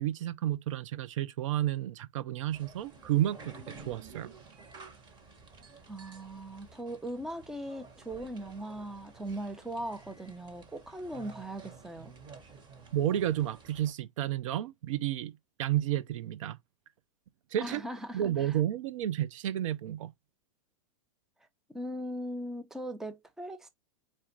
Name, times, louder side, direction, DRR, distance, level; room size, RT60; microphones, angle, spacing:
voice 1, 0.0-4.3 12.9-16.6 17.5-17.8 18.1-20.1, right 12 dB, 75° right, 0.5 m, -31 dB
sound 1, 2.5-13.9, right 4 dB, 25° right, 1.4 m, -52 dB
voice 2, 5.9-12.1 17.6-18.6 21.7-23.7, right 1 dB, 5° right, 0.6 m, -39 dB
4.4 x 2.4 x 4.5 m
hypercardioid pair, 125°, 17 cm